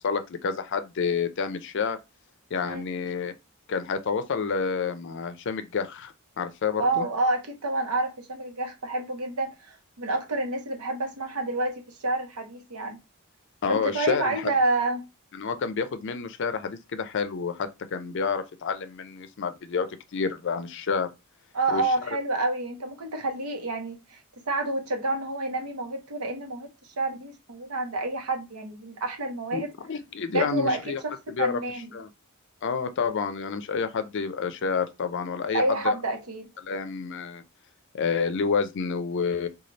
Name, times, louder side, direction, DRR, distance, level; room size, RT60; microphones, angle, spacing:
voice 1, 0.0-2.0 2.5-3.3 3.7-7.1 13.6-14.5 15.3-21.1 21.7-22.2 29.5-31.0 31.3-31.6 31.9-32.1 32.6-35.9 36.6-37.4 37.9-39.5, left 5 dB, 55° left, 0.4 m, -29 dB
voice 2, 6.8-13.0 13.7-15.1 21.5-24.2 24.5-26.7 27.0-29.7 30.3-31.9 35.5-36.5, right 2 dB, 85° right, 0.9 m, -28 dB
3.9 x 2.3 x 3.1 m
head